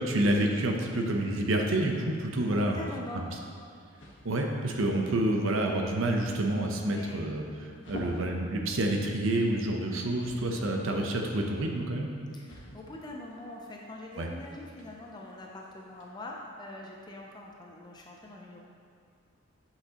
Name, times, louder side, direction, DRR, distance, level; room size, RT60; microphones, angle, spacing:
voice 1, 0.0-2.8 4.2-7.4 7.9-12.1 14.2-14.3, right 1 dB, 90° right, 2 dB, 0.7 m, -28 dB
voice 2, 2.5-3.3 6.8-7.2 10.6-10.9 12.3-18.6, left 2 dB, 20° left, -1 dB, 0.5 m, -44 dB
sound 1, 3.8-16.1, left 1 dB, 65° left, 1.3 m, -50 dB
8.3 x 5.8 x 2.9 m, 2.3 s
head